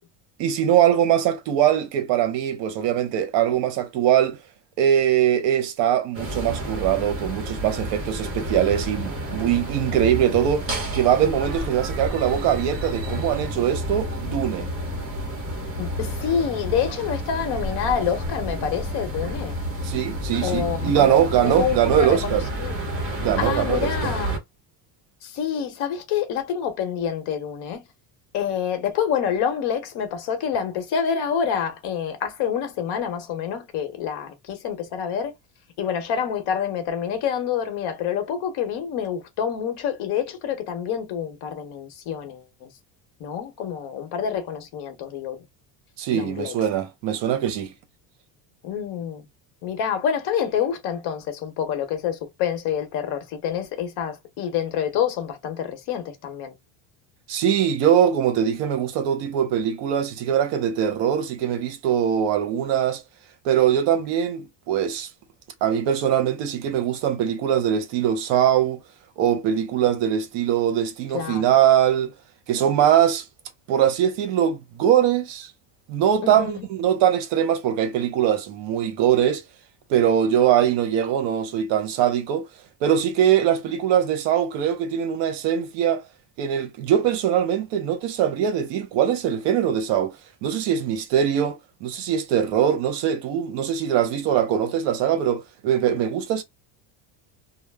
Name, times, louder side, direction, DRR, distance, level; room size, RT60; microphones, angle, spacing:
voice 1, 0.4-4.4 4.8-14.7 19.8-22.4 23.2-24.1 46.0-47.7 57.3-63.0 63.4-65.1 65.6-68.8 69.2-72.1 72.5-73.2 73.7-75.5 75.9-79.4 79.9-82.5 82.8-86.0 86.4-90.1 90.4-96.4, right 9 dB, 65° right, 0.8 m, -22 dB
sound 1, 6.1-24.4, right 1 dB, 30° right, 1.0 m, -30 dB
voice 2, 15.8-19.6 20.4-22.8 23.4-24.4 25.2-27.8 28.3-35.3 35.8-42.7 43.2-45.4 46.1-46.5 48.6-49.3 49.6-56.5 71.1-71.5 76.2-76.7, left 8 dB, 60° left, 0.9 m, -27 dB
2.3 x 2.0 x 3.3 m
cardioid pair, 145°, 45 cm